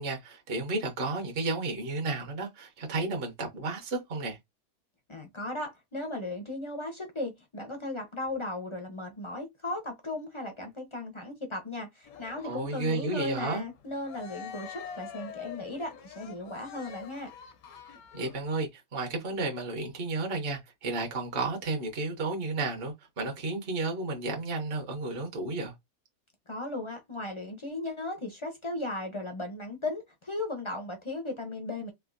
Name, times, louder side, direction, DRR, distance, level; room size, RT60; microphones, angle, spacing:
voice 1, 0.0-4.4 12.4-13.6 18.1-25.7, right 3 dB, 45° right, 0.9 m, -32 dB
voice 2, 5.1-17.3 26.5-31.9, left 2 dB, 35° left, 0.4 m, -36 dB
Cheering, 12.1-18.5, left 8 dB, 75° left, 1.1 m, -45 dB
3.4 x 2.5 x 2.5 m
omnidirectional pair, 1.6 m